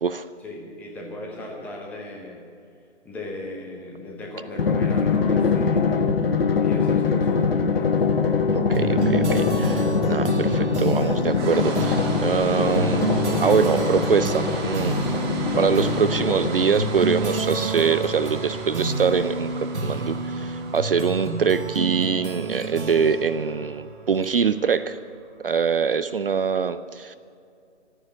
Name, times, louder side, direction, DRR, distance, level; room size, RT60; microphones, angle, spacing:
voice 1, 0.4-2.4 3.0-6.2 6.6-8.1, left 1 dB, 5° left, -1 dB, 0.8 m, -37 dB
Drum, 4.6-17.0, left 5 dB, 55° left, 1.1 m, -23 dB
voice 2, 8.5-13.1 13.4-15.0 15.6-25.0 25.4-27.1, right 6 dB, 50° right, 13 dB, 0.5 m, -24 dB
sound 1, 8.7-24.6, right 3 dB, 70° right, 1.4 m, -29 dB
sound 2, 11.3-25.4, right 4 dB, 20° right, 1.5 m, -38 dB
13.5 x 9.9 x 8.6 m, 2.4 s
figure-of-eight pair, 140°, 36 cm